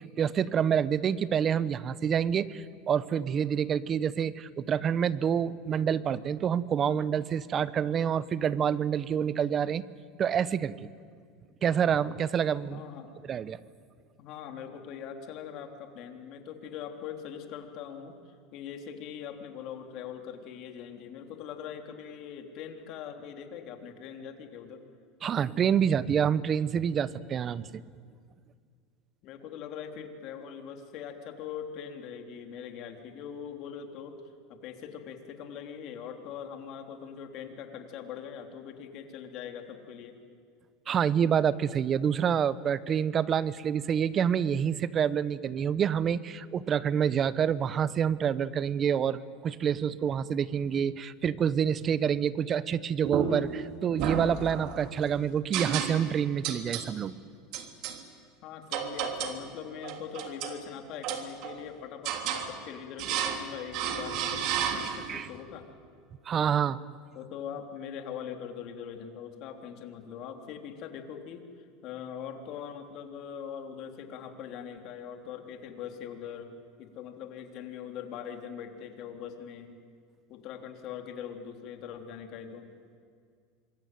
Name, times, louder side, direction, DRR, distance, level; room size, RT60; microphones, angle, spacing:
voice 1, 0.0-9.8 10.2-10.9 11.6-12.8 13.2-13.6 25.2-27.8 40.9-57.1 65.1-65.3 66.2-66.8, right 8 dB, 35° right, 17 dB, 1.0 m, -27 dB
voice 2, 12.7-13.1 14.2-18.2 18.5-24.8 29.2-34.2 34.5-40.2 58.4-65.7 67.1-71.5 71.8-76.5 76.8-79.7 80.3-82.7, left 8 dB, 55° left, 5 dB, 3.5 m, -42 dB
sound 1, 53.0-53.6 54.0-54.9 55.5-56.2 56.4-56.9 57.5-58.0 58.7-59.4 59.8-60.6 61.0-61.6 62.0-62.5 63.0-63.5 63.7-65.2, right 8 dB, 60° right, 3.1 m, -32 dB
26.0 x 22.0 x 9.3 m, 2.1 s
supercardioid pair, 110°, 0 cm